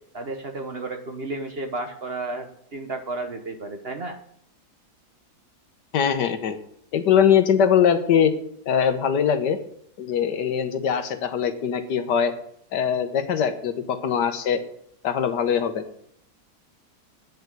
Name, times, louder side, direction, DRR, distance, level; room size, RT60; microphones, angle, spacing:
voice 1, 0.1-4.2, right 2 dB, 40° right, 6 dB, 1.2 m, -32 dB
voice 2, 5.9-6.6 6.9-8.3 8.7-9.6 10.0-12.3 12.7-14.6 15.0-15.8, left 8 dB, 80° left, 9 dB, 1.6 m, -21 dB
9.5 x 6.8 x 8.1 m, 0.68 s
omnidirectional pair, 1.8 m